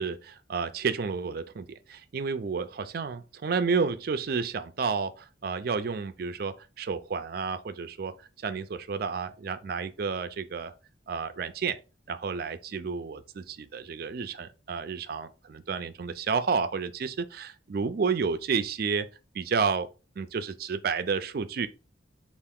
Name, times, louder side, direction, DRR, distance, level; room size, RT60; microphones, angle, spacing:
voice 1, 0.0-10.7 11.1-11.8 12.1-19.1 19.3-19.9 20.2-21.7, right 5 dB, 50° right, 0.4 m, -31 dB
4.6 x 2.5 x 3.5 m
head